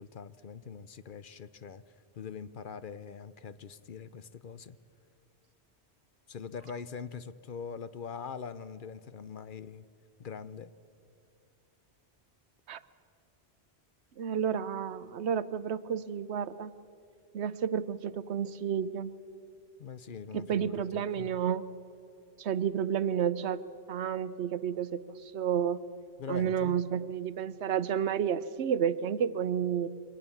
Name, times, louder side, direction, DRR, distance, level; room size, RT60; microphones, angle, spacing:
voice 1, 0.0-1.8 2.1-4.8 6.3-9.8 10.2-10.7 19.8-21.3 26.2-26.7, left 6 dB, 55° left, 14 dB, 0.8 m, -43 dB
voice 2, 14.2-16.7 17.3-19.1 20.3-21.7 22.4-23.6 23.9-25.8 26.3-29.9, right 8 dB, 80° right, 16 dB, 1.0 m, -31 dB
23.5 x 18.5 x 7.1 m, 2.6 s
omnidirectional pair, 1.1 m